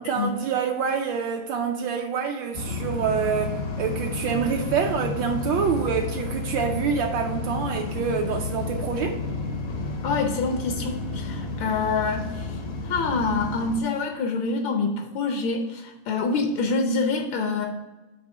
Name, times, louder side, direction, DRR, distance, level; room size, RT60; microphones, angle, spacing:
voice 1, 0.0-9.2, right 6 dB, 75° right, 2 dB, 1.3 m, -26 dB
sound 1, 2.5-13.8, left 3 dB, 55° left, 0.7 m, -31 dB
voice 2, 10.0-12.5 12.8-17.7, left 4 dB, 80° left, 3 dB, 1.5 m, -26 dB
7.8 x 3.0 x 6.2 m, 1.1 s
omnidirectional pair, 2.2 m